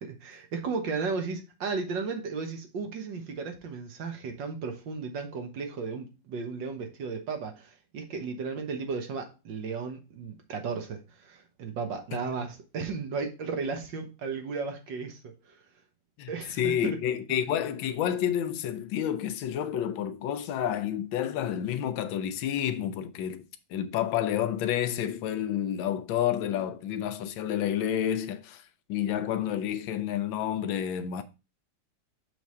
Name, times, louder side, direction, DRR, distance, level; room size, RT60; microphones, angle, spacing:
voice 1, 0.0-15.6 16.3-17.0, right 4 dB, 70° right, 1.8 m, -35 dB
voice 2, 16.2-28.6 28.9-31.2, left 10 dB, 80° left, 1.4 m, -30 dB
6.3 x 3.4 x 5.4 m
omnidirectional pair, 2.1 m